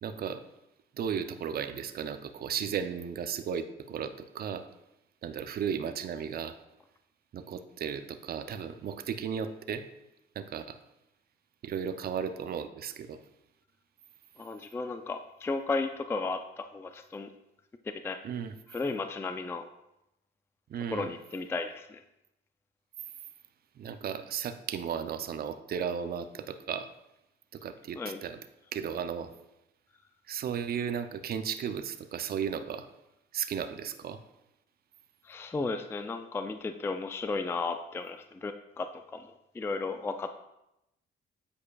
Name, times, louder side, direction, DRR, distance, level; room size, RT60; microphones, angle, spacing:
voice 1, 0.0-0.4 0.9-4.6 5.2-6.6 7.3-9.8 10.4-10.8 11.6-13.2 18.2-18.6 20.7-21.1 23.8-26.9 27.5-28.4 28.7-29.3 30.3-32.9 33.3-34.2, right 7 dB, 50° right, 9 dB, 0.5 m, -35 dB
voice 2, 14.4-17.3 18.0-18.2 18.7-19.6 20.9-22.0 28.0-28.2 35.3-38.9 39.1-39.2 39.6-40.3, left 3 dB, 10° left, 8 dB, 0.3 m, -34 dB
8.4 x 5.0 x 2.3 m, 0.88 s
cardioid pair, 90°, 20 cm